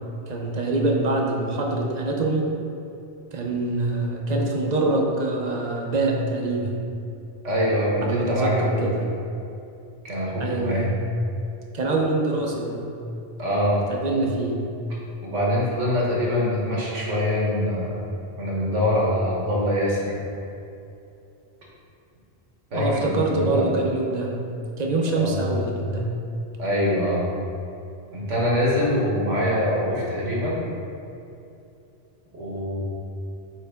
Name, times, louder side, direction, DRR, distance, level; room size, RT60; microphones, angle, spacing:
voice 1, 0.3-2.4 3.3-6.7 8.1-8.9 10.4-10.9 11.7-12.8 13.9-14.6 22.7-24.3 24.8-26.0, right 2 dB, 45° right, 0 dB, 0.7 m, -24 dB
voice 2, 7.4-8.8 10.0-10.8 13.4-13.8 15.2-18.0 18.4-20.2 22.7-23.7 25.1-25.4 26.6-27.3 28.1-30.6 32.3-32.8, left 1 dB, 80° right, -4 dB, 1.6 m, -24 dB
8.1 x 3.3 x 3.5 m, 2.7 s
omnidirectional pair, 1.2 m